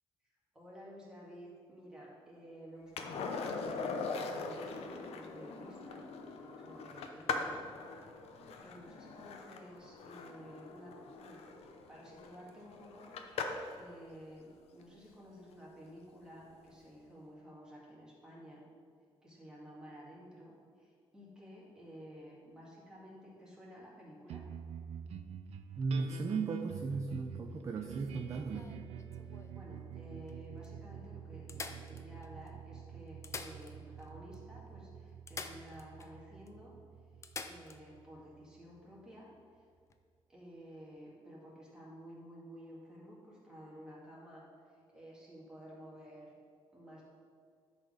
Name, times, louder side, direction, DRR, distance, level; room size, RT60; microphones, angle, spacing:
voice 1, 0.5-7.7 8.6-11.5 11.9-13.1 13.4-18.6 19.2-24.4 29.5-36.7 37.4-39.3 40.3-44.5 44.7-46.3 46.7-47.0, equal, 5° right, -6 dB, 1.9 m, -53 dB
Skateboard, 3.0-13.8 16.4-16.5, left 4 dB, 80° left, 0.7 m, -41 dB
sound 1, 24.3-39.0, right 8 dB, 85° right, 0.4 m, -48 dB
voice 2, 25.8-28.7, right 4 dB, 30° right, 3 dB, 0.4 m, -36 dB
sound 2, 28.0-29.6 30.3-30.4 30.6-30.7 31.5-32.5 33.1-34.1 34.3-34.4 35.3-36.1 36.5-36.6 37.2-37.8 39.8-39.9, left 4 dB, 30° left, 0.4 m, -47 dB
10.5 x 4.2 x 5.0 m, 2.2 s
wide cardioid pair, 175°, 10 cm